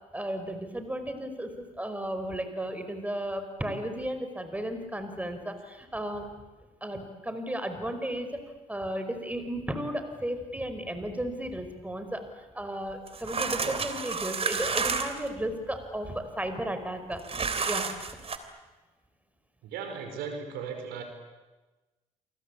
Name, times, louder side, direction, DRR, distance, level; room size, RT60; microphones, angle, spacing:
voice 1, 0.1-6.3 6.8-8.4 8.7-17.2 17.6-18.1, right 1 dB, 10° right, 8 dB, 5.0 m, -34 dB
sound 1, 13.1-15.3 17.2-18.4, right 5 dB, 35° right, 3.3 m, -30 dB
voice 2, 19.6-21.0, right 6 dB, 70° right, 5 dB, 5.1 m, -37 dB
29.0 x 23.0 x 8.6 m, 1.2 s
hypercardioid pair, 55°, 17 cm